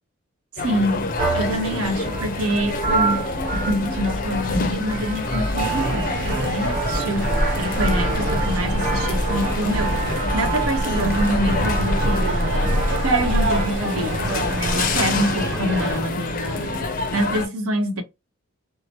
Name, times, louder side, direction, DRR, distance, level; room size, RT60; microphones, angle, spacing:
sound 1, 0.6-17.5, left 3 dB, 40° left, 0.5 m, -28 dB
voice 1, 0.6-16.8 17.1-18.0, equal, 80° right, 1.0 m, -26 dB
sound 2, 1.2-13.8, right 1 dB, 40° right, 1.2 m, -26 dB
sound 3, 5.6-16.0, right 3 dB, 55° right, 0.5 m, -28 dB
2.8 x 2.1 x 2.9 m
head